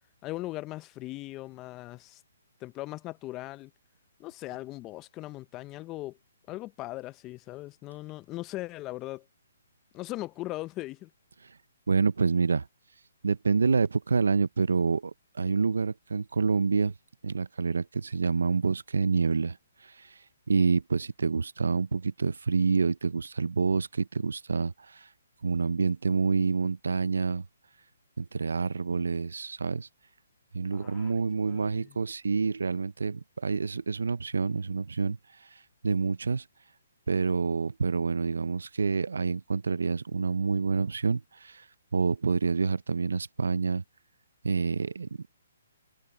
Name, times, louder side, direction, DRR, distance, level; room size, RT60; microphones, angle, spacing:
voice 1, 0.2-2.2 2.6-3.7 4.2-6.2 6.5-9.3 9.9-11.1 30.7-31.1 31.5-32.0, left 18 dB, 25° left, 0.7 m, -39 dB
voice 2, 11.9-12.7 13.2-16.9 17.2-20.2 20.5-25.1 25.4-27.5 28.2-29.9 30.5-36.4 37.1-41.7 41.9-43.8 44.4-45.3, right 4 dB, 85° right, 0.7 m, -28 dB
hypercardioid pair, 145°, 0 cm